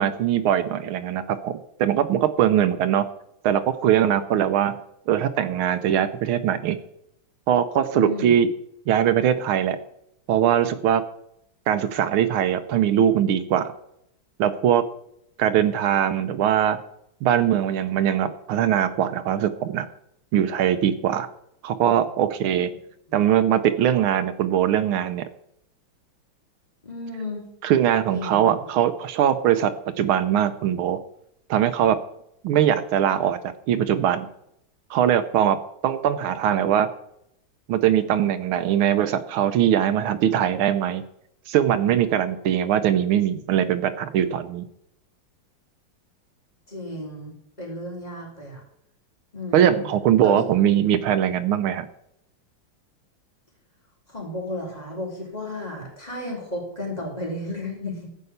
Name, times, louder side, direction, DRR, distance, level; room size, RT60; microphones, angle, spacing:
voice 1, 0.0-3.1 3.4-4.8 5.1-6.8 7.5-8.5 8.9-9.8 10.3-11.0 11.7-13.7 14.4-14.8 15.4-16.8 17.2-19.9 20.3-21.3 21.6-22.7 23.1-25.3 27.6-31.0 31.5-32.0 32.4-34.3 34.9-36.9 37.7-41.0 41.5-44.6 49.5-51.8, right 10 dB, 80° right, 12 dB, 1.5 m, -21 dB
voice 2, 7.9-8.4 26.8-27.5 28.1-28.6 46.7-48.6 49.3-49.9 50.2-50.4 54.1-58.1, left 1 dB, 20° left, -3 dB, 3.6 m, -33 dB
14.0 x 5.6 x 7.9 m, 0.77 s
omnidirectional pair, 2.3 m